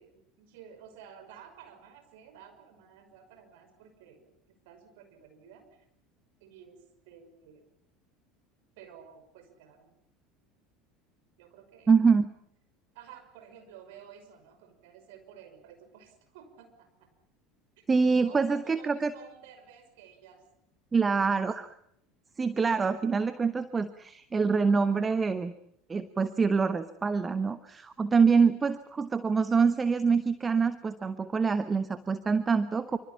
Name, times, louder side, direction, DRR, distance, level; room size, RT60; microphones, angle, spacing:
voice 1, 0.0-4.4 4.6-5.8 6.4-7.7 8.8-9.9 11.4-11.9 12.9-17.1 18.2-20.4 28.6-28.8, right 8 dB, 60° right, 7 dB, 5.8 m, -52 dB
voice 2, 11.9-12.3 17.9-19.1 20.9-21.7 22.4-25.5 25.9-33.0, right 5 dB, 20° right, 12 dB, 1.2 m, -25 dB
27.0 x 26.0 x 5.9 m, 0.73 s
figure-of-eight pair, 70°, 0 cm